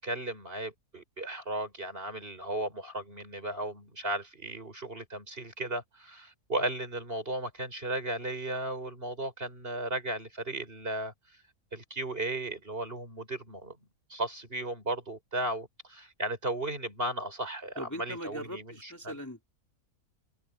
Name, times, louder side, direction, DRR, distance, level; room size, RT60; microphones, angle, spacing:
voice 1, 0.0-11.1 11.7-13.8 14.1-19.1, right 1 dB, 35° right, 5.2 m, -35 dB
voice 2, 17.8-19.5, equal, 10° left, 3.1 m, -40 dB
omnidirectional pair, 1.7 m